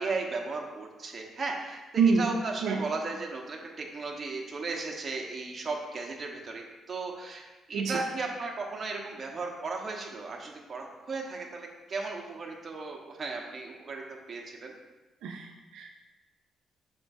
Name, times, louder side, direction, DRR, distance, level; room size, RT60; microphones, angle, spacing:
voice 1, 0.0-14.0 14.3-14.7, right 3 dB, 40° right, 0 dB, 1.2 m, -36 dB
voice 2, 15.2-15.9, right 5 dB, 85° right, 1 dB, 0.6 m, -26 dB
7.9 x 5.8 x 2.7 m, 1.1 s
cardioid pair, 90°, 0 cm